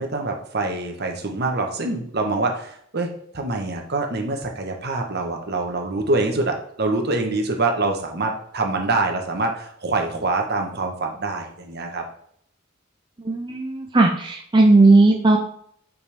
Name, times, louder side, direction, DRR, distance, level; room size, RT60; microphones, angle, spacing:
voice 1, 0.0-12.0, right 2 dB, 55° right, 3 dB, 1.2 m, -25 dB
voice 2, 13.2-15.4, right 2 dB, 25° right, 1 dB, 0.6 m, -16 dB
7.5 x 5.3 x 3.5 m, 0.66 s
head